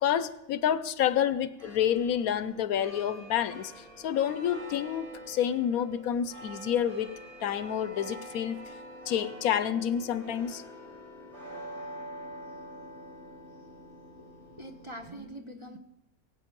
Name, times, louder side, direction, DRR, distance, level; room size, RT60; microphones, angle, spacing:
voice 1, 0.0-8.6 9.1-10.6, left 9 dB, 75° left, 15 dB, 1.1 m, -29 dB
sound 1, 1.6-15.2, equal, 75° right, 6.2 m, -46 dB
voice 2, 14.6-15.8, right 1 dB, 25° right, 3 dB, 0.9 m, -43 dB
22.0 x 8.1 x 5.3 m, 0.91 s
omnidirectional pair, 1.5 m